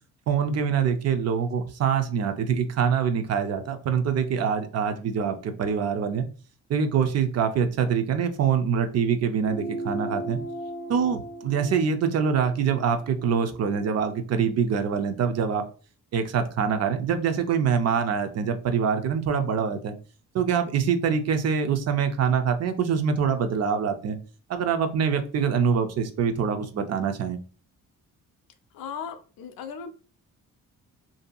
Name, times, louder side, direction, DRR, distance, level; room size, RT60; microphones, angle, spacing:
voice 1, 0.3-6.2 6.7-10.4 10.9-15.6 16.1-20.0 20.3-24.2 24.5-27.4, right 7 dB, 50° right, 0.4 m, -25 dB
sound 1, 9.4-14.2, right 2 dB, 65° right, 1.3 m, -38 dB
voice 2, 28.7-29.9, left 7 dB, 85° left, 0.5 m, -37 dB
2.6 x 2.6 x 2.2 m
cardioid pair, 130°, 34 cm